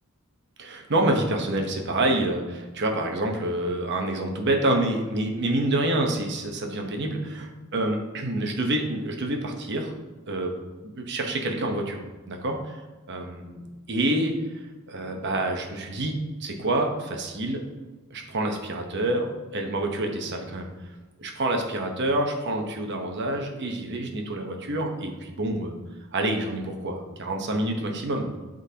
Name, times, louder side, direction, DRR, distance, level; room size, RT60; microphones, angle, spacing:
voice 1, 0.6-9.9 10.3-10.5 10.9-12.6 13.1-17.6 18.1-20.7 21.2-25.8 26.1-28.3, right 1 dB, 55° right, 3 dB, 0.9 m, -27 dB
11.5 x 3.9 x 2.8 m, 1.2 s
head